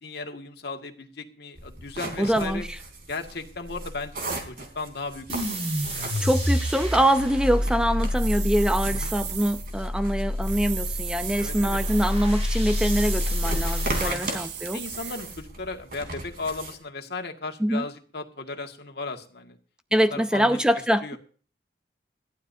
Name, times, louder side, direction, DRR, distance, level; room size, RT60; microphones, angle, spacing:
voice 1, 0.0-2.7 3.1-6.2 8.9-9.1 11.4-11.8 14.0-14.4 14.7-19.6 20.1-20.6 21.0-21.2, left 3 dB, 65° left, 1.9 m, -36 dB
sound 1, 1.6-16.8, right 2 dB, 55° right, 3.6 m, -38 dB
voice 2, 2.2-2.8 6.2-14.8 17.6-17.9 19.9-21.2, equal, 5° right, 0.5 m, -24 dB
sound 2, 5.3-14.2, left 1 dB, 35° right, 5.8 m, -28 dB
sound 3, 8.1-9.7 10.4-12.3 12.7-13.4 14.0-15.4, right 9 dB, 85° right, 1.4 m, -37 dB
21.0 x 14.5 x 2.7 m
head